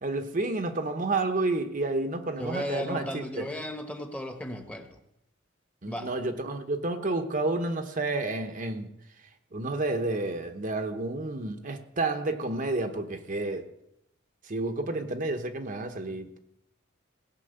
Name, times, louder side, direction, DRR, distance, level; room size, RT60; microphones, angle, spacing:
voice 1, 0.0-3.5 5.8-8.9 9.5-13.7 14.5-16.4, right 2 dB, 45° right, 6 dB, 0.9 m, -30 dB
voice 2, 2.4-5.0 5.9-6.2, equal, 5° left, 6 dB, 1.1 m, -35 dB
17.0 x 6.0 x 7.8 m, 0.82 s
head